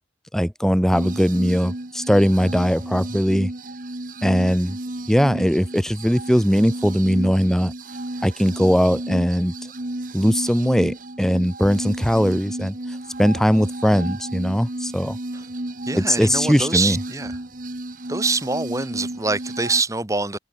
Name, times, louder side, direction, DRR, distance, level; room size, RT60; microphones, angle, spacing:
voice 1, 0.3-3.5 4.2-4.8 5.1-7.7 8.2-9.5 10.1-12.7 13.2-15.2 15.9-17.0, equal, ahead, 1.2 m, -20 dB
sound 1, 0.9-19.8, right 1 dB, 45° right, 1.7 m, -33 dB
voice 2, 15.9-17.3 18.1-20.4, right 3 dB, 15° right, 1.2 m, -24 dB
head